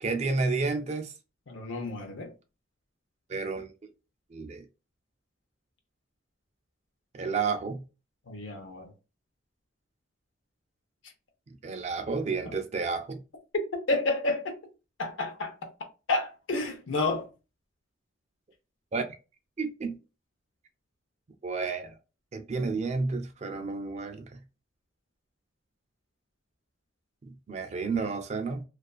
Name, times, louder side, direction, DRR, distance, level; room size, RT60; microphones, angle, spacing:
voice 1, 0.0-1.1 3.3-3.7 4.3-4.6 7.1-7.8 11.5-13.2 18.9-19.0 19.6-20.0 21.4-21.9 22.3-24.4 27.2-28.6, right 4 dB, 35° right, 0.3 m, -31 dB
voice 2, 1.5-2.3 8.3-8.9 13.9-14.6 15.0-15.5 16.1-17.3, left 2 dB, 85° left, 0.7 m, -30 dB
2.4 x 2.3 x 2.3 m
head